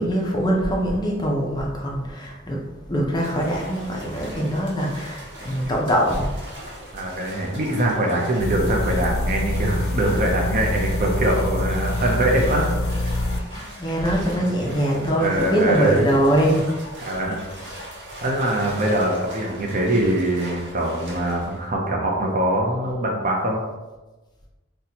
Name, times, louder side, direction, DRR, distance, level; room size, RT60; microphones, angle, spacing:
voice 1, 0.0-2.6 2.9-6.3 13.5-16.7 17.6-17.7, right 1 dB, 20° left, -2 dB, 0.5 m, -22 dB
sound 1, 3.2-21.7, equal, 60° right, 0.8 m, -40 dB
voice 2, 6.9-13.1 14.5-14.6 15.2-16.1 17.0-17.4 18.2-23.6, right 1 dB, 40° right, 0 dB, 0.5 m, -23 dB
sound 2, 8.4-13.4, left 1 dB, 85° left, 0.4 m, -25 dB
4.1 x 2.2 x 2.8 m, 1.2 s
head